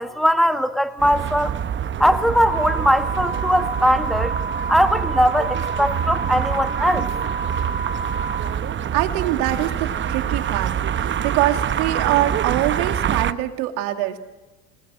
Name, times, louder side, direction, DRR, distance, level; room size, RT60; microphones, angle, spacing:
voice 1, 0.0-1.6 2.0-4.4 4.7-7.1, equal, ahead, 8 dB, 1.7 m, -20 dB
sound 1, 1.0-13.3, right 9 dB, 25° right, 0.8 m, -26 dB
sound 2, 2.3-8.4, right 3 dB, 75° left, 3.6 m, -30 dB
voice 2, 8.9-14.2, right 14 dB, 70° right, 6 dB, 2.5 m, -24 dB
27.0 x 20.0 x 6.3 m, 1.2 s
hypercardioid pair, 95°, 46 cm